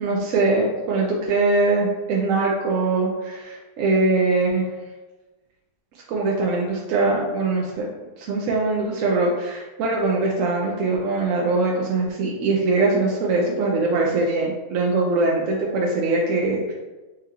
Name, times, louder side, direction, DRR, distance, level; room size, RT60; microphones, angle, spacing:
voice 1, 0.0-4.6 6.1-7.9 8.2-16.7, right 3 dB, 70° right, -3 dB, 0.8 m, -22 dB
4.5 x 2.9 x 2.4 m, 1.2 s
omnidirectional pair, 1.7 m